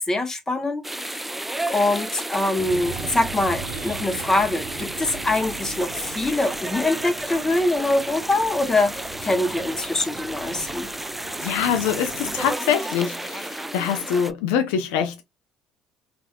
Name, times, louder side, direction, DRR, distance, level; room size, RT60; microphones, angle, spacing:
voice 1, 0.0-10.9, left 2 dB, 20° left, 0.9 m, -24 dB
sound 1, 0.8-14.3, right 1 dB, 5° right, 0.3 m, -32 dB
sound 2, 2.6-12.5, right 5 dB, 50° right, 0.7 m, -39 dB
voice 2, 11.4-15.2, left 8 dB, 70° left, 0.4 m, -24 dB
3.2 x 2.4 x 2.2 m
hypercardioid pair, 55°, 3 cm